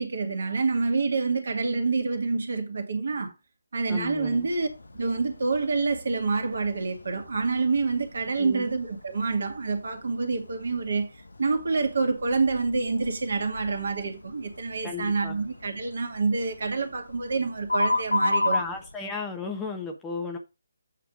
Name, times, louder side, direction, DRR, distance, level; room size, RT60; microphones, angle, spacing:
voice 1, 0.0-3.3 3.7-4.7 4.9-11.1 11.4-18.6, right 4 dB, 55° right, 1.8 m, -27 dB
sound 1, 3.9-18.9, left 2 dB, 70° left, 0.9 m, -35 dB
voice 2, 3.9-4.5 8.4-8.7 14.8-15.4 18.5-20.4, left 4 dB, 10° left, 1.0 m, -34 dB
8.4 x 3.4 x 6.2 m
figure-of-eight pair, 150°, 0 cm